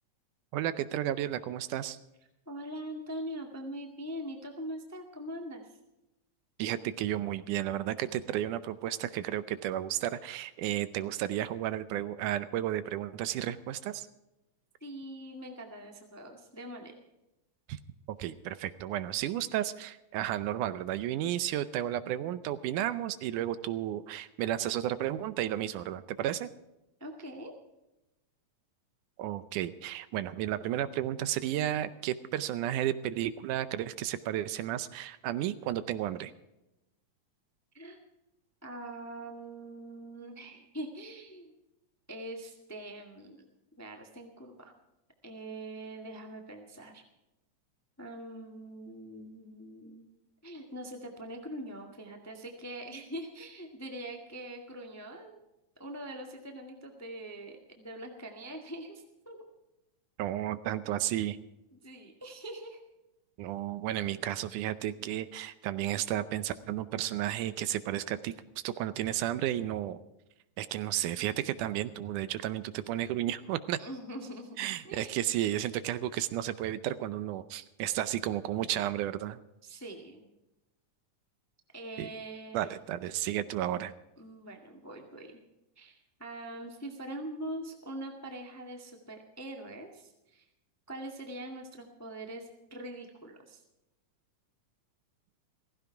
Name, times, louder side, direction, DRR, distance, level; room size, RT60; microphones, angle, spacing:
voice 1, 0.5-2.0 6.6-14.1 17.7-17.8 18.2-26.5 29.2-36.3 60.2-61.4 63.4-68.3 68.6-70.0 70.6-73.8 74.6-79.4 82.0-82.1 82.5-83.9, right 12 dB, 80° right, 14 dB, 2.1 m, -33 dB
voice 2, 2.5-5.8 14.8-16.9 27.0-27.5 37.7-38.0 38.6-41.5 42.1-43.5 43.8-44.7 45.2-47.0 48.0-50.1 50.4-55.4 55.8-59.4 61.7-62.8 73.8-75.2 79.6-80.3 81.7-82.7 84.2-85.3 85.7-90.4 90.9-93.6, right 1 dB, 10° left, 3 dB, 1.0 m, -43 dB
16.0 x 15.5 x 4.6 m, 0.93 s
omnidirectional pair, 3.7 m